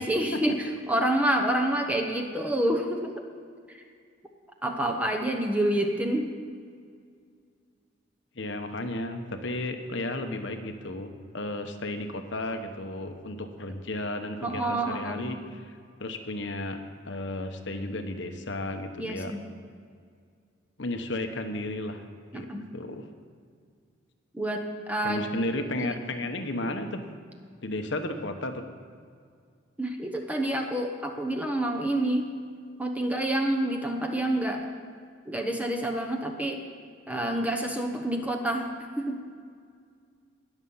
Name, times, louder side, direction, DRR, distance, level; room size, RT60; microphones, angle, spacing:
voice 1, 0.0-3.1 3.7-3.8 4.6-6.3 14.4-15.2 19.0-19.4 22.3-22.6 24.3-25.2 25.8-26.1 29.8-32.3 32.8-34.7 35.2-36.6 37.1-39.2, right 1 dB, 5° right, 3 dB, 1.0 m, -28 dB
voice 2, 8.4-15.4 15.7-16.8 17.0-19.3 20.8-22.0 22.3-22.5 22.7-23.0 25.0-27.0 27.6-28.6, left 1 dB, 60° left, 6 dB, 1.0 m, -33 dB
20.0 x 7.2 x 5.6 m, 2.1 s
head